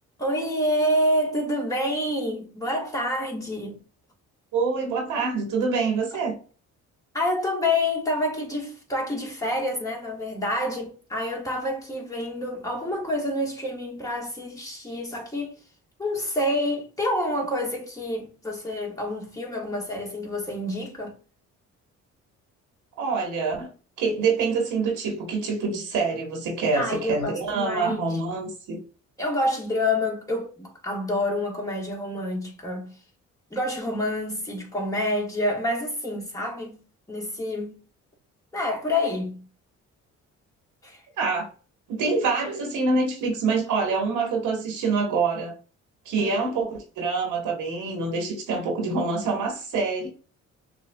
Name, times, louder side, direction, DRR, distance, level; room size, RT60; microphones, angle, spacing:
voice 1, 0.2-3.8 7.1-15.6 16.0-21.1 26.7-28.2 29.2-33.0 33.5-36.8 37.1-37.8 38.5-39.5 40.8-41.0 46.2-46.3, left 1 dB, 10° left, 1.3 m, -28 dB
voice 2, 4.5-6.4 23.0-23.7 24.0-28.8 41.2-41.5 41.9-45.6 46.0-50.1, right 4 dB, 85° right, 1.4 m, -26 dB
6.5 x 2.3 x 2.3 m
cardioid pair, 90°, 30 cm